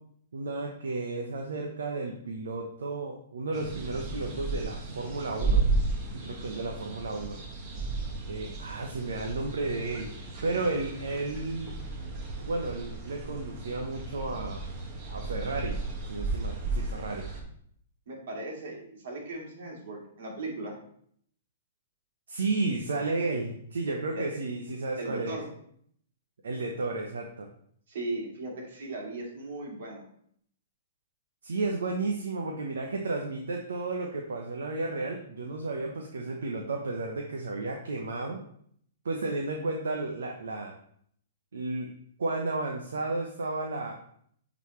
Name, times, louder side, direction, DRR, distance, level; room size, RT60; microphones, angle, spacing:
voice 1, 0.3-5.6 6.1-7.4 8.3-10.1 10.4-11.8 12.4-14.6 15.1-15.8 16.1-17.2 22.3-25.3 26.4-27.5 31.4-38.4 39.0-40.7 41.5-41.9 42.2-44.0, right 3 dB, 85° right, 1 dB, 0.9 m, -33 dB
sound 1, 3.5-17.4, right 3 dB, 35° right, 1.5 m, -34 dB
voice 2, 18.1-18.8 19.0-20.8 24.1-24.4 25.0-25.5 27.9-30.0, right 2 dB, 70° right, -2 dB, 2.5 m, -37 dB
9.1 x 4.1 x 3.1 m, 0.64 s
hypercardioid pair, 135°, 0 cm